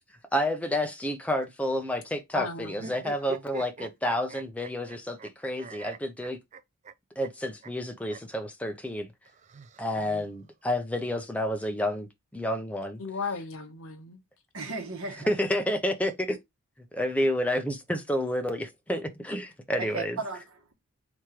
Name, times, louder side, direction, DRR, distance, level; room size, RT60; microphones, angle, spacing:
voice 1, 0.3-6.4 7.2-9.1 9.8-12.1 12.3-13.0 15.3-16.4 16.9-20.2, left 1 dB, 5° left, 0.6 m, -30 dB
voice 2, 2.3-3.0 10.0-10.2 13.0-14.2, left 4 dB, 65° left, 0.9 m, -36 dB
sound 1, 2.7-5.3 5.6-6.9 7.2-7.3 7.6-7.7 8.1-8.2 9.2-10.2, right 3 dB, 30° right, 0.3 m, -43 dB
voice 3, 14.5-15.4 17.2-17.3 19.8-20.7, right 3 dB, 70° right, 1.2 m, -36 dB
3.6 x 3.0 x 4.6 m
head